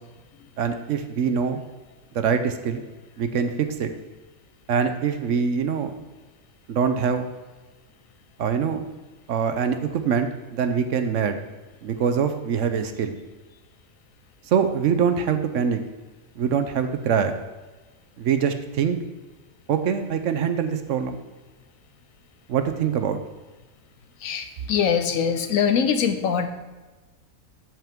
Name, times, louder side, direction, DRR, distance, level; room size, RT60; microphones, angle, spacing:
voice 1, 0.6-1.6 2.1-2.8 3.2-3.9 4.7-5.9 6.7-7.3 8.4-8.8 9.3-11.4 11.8-13.1 14.5-15.8 16.4-17.3 18.2-19.0 19.7-21.2 22.5-23.2, right 7 dB, 65° right, 8 dB, 1.0 m, -24 dB
voice 2, 24.2-26.5, left 7 dB, 75° left, 8 dB, 1.2 m, -23 dB
12.5 x 5.9 x 3.6 m, 1.2 s
omnidirectional pair, 1.4 m